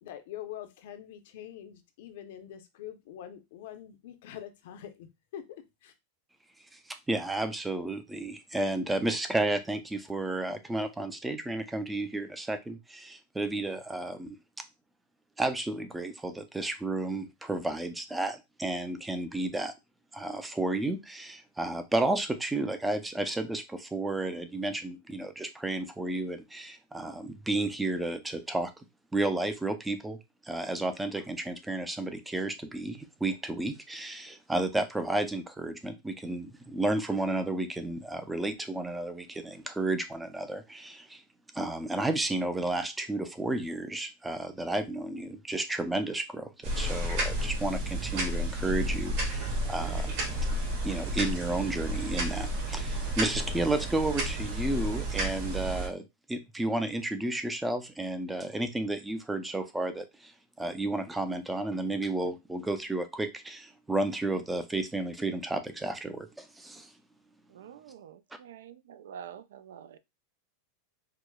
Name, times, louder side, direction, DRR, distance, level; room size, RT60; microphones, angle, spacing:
voice 1, 0.0-5.9, left 11 dB, 65° left, 0.6 m, -44 dB
voice 2, 7.1-14.4 15.4-19.7 20.1-28.8 29.1-41.2 41.5-50.1 50.8-66.9, right 2 dB, 5° right, 0.4 m, -32 dB
sound 1, 46.6-55.9, right 1 dB, 55° right, 1.7 m, -31 dB
voice 3, 67.5-70.0, right 9 dB, 90° right, 0.3 m, -47 dB
4.6 x 2.0 x 2.2 m
supercardioid pair, 150°, 0 cm